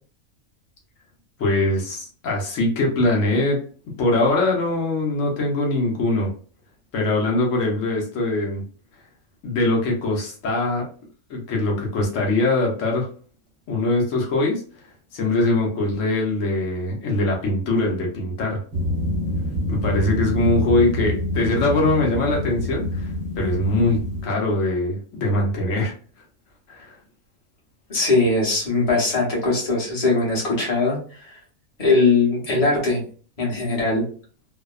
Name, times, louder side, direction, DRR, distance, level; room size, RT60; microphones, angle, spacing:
voice 1, 1.4-3.6 4.0-6.3 6.9-8.6 9.4-10.9 11.3-13.1 13.7-14.6 15.1-18.6 19.7-23.1 23.4-25.9 26.7-27.0, left 2 dB, 65° left, -1 dB, 1.2 m, -22 dB
sound 1, 18.7-24.2, left 1 dB, ahead, 0.7 m, -26 dB
voice 2, 27.9-31.4 31.8-33.0 33.4-34.0, left 3 dB, 30° left, -5 dB, 1.0 m, -20 dB
2.8 x 2.1 x 2.3 m, 0.42 s
omnidirectional pair, 1.5 m